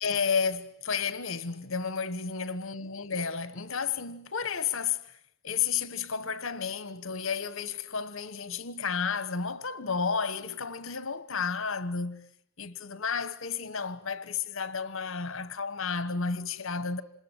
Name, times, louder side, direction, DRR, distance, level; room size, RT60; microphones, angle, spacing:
voice 1, 0.0-5.1 5.4-12.3 12.6-17.0, left 6 dB, 75° left, 1.3 m, -32 dB
27.0 x 21.5 x 9.1 m
head